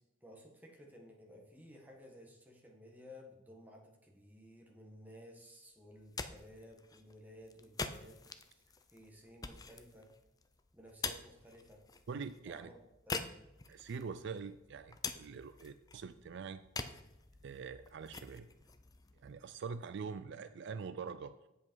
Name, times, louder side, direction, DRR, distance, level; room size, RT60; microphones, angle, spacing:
voice 1, 0.2-8.2 8.5-8.6 8.9-10.1 10.7-11.8 12.4-12.8 13.1-13.4, equal, 10° right, 0 dB, 1.5 m, -56 dB
sound 1, 5.9-19.8, left 4 dB, 20° left, 0.5 m, -46 dB
voice 2, 12.1-12.7 13.7-16.6 17.4-18.5 19.2-21.3, right 5 dB, 60° right, 12 dB, 0.4 m, -44 dB
8.4 x 7.7 x 4.6 m, 0.92 s
head